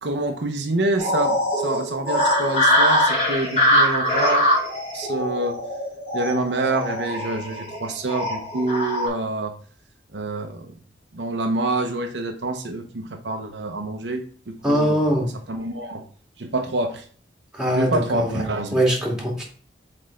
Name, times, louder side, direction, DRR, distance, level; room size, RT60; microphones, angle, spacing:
voice 1, 0.0-4.5 4.9-5.6 6.1-9.5 10.1-10.7 11.1-15.0 15.5-16.0 16.4-17.0 17.7-18.8, right 2 dB, 80° right, 4 dB, 0.9 m, -26 dB
sound 1, 1.0-9.1, left 1 dB, 35° left, 3.0 m, -22 dB
voice 2, 14.6-15.3 17.5-18.4 18.7-19.4, equal, 5° right, -2 dB, 2.1 m, -22 dB
7.7 x 3.5 x 3.7 m, 0.43 s
head